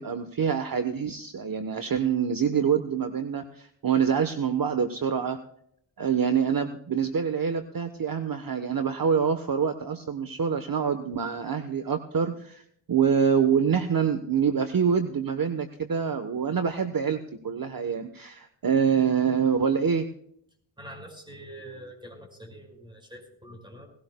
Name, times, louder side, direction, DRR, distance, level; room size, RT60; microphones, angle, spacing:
voice 1, 0.0-5.4 6.0-12.6 12.9-20.1, right 7 dB, 45° right, 8 dB, 1.1 m, -26 dB
voice 2, 20.8-23.9, right 1 dB, 10° right, 2 dB, 5.2 m, -44 dB
19.0 x 16.5 x 2.2 m, 0.69 s
cardioid pair, 65°, 46 cm